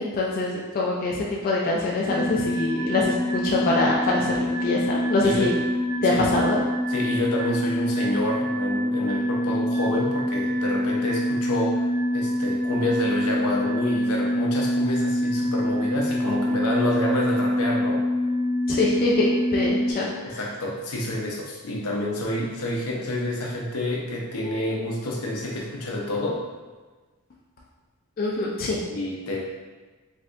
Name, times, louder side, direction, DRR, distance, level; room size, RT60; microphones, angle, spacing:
voice 1, 0.0-5.5 6.0-6.6 18.7-20.5 28.2-28.8, left 3 dB, 40° left, -3 dB, 0.3 m, -24 dB
sound 1, 2.0-19.9, equal, 35° right, 1.1 m, -25 dB
voice 2, 6.9-11.9 12.1-18.0 20.2-26.4 28.9-29.4, left 1 dB, 80° left, -1 dB, 0.6 m, -28 dB
3.2 x 2.6 x 2.4 m, 1.3 s
head